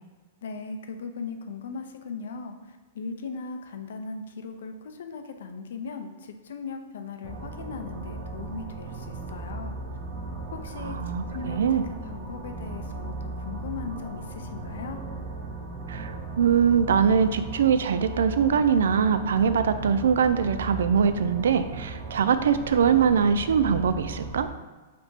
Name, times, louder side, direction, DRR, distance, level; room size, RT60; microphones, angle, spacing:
voice 1, 0.4-9.8 10.5-15.0, left 4 dB, 80° left, 7 dB, 0.5 m, -38 dB
sound 1, 7.2-24.5, right 2 dB, 35° right, 0.8 m, -37 dB
voice 2, 10.8-11.8 15.9-24.5, right 7 dB, 85° right, 10 dB, 0.3 m, -22 dB
3.4 x 2.8 x 4.3 m, 1.2 s
supercardioid pair, 160°, 0 cm